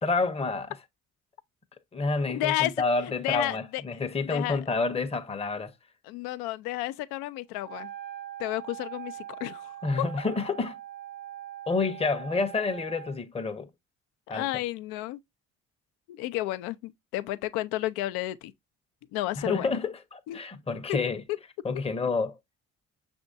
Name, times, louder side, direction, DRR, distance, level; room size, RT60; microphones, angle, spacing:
voice 1, 0.0-0.7 1.9-5.7 9.8-10.8 11.7-13.7 14.3-14.5 19.4-21.2 21.6-22.4, left 3 dB, 15° left, 0.7 m, -29 dB
voice 2, 2.3-2.7 3.2-4.0 4.3-4.6 6.0-7.9 8.4-9.7 14.3-15.2 16.1-18.5 19.1-19.8 20.3-20.4 20.9-21.0, left 15 dB, 75° left, 0.5 m, -32 dB
Wind instrument woodwind instrument, 7.6-13.2, right 12 dB, 75° right, 0.8 m, -42 dB
6.0 x 3.5 x 2.5 m
hypercardioid pair, 50°, 37 cm